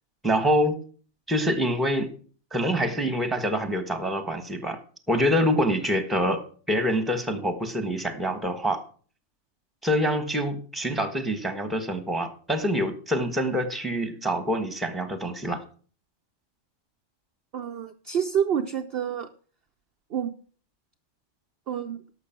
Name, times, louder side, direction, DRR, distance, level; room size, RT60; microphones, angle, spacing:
voice 1, 0.2-0.8 1.3-2.2 2.5-4.8 5.1-8.8 9.8-15.6, equal, ahead, 9 dB, 1.3 m, -26 dB
voice 2, 17.5-19.3 20.1-20.3 21.7-22.0, right 8 dB, 55° right, 6 dB, 0.8 m, -28 dB
12.0 x 6.7 x 5.9 m, 0.42 s
omnidirectional pair, 1.4 m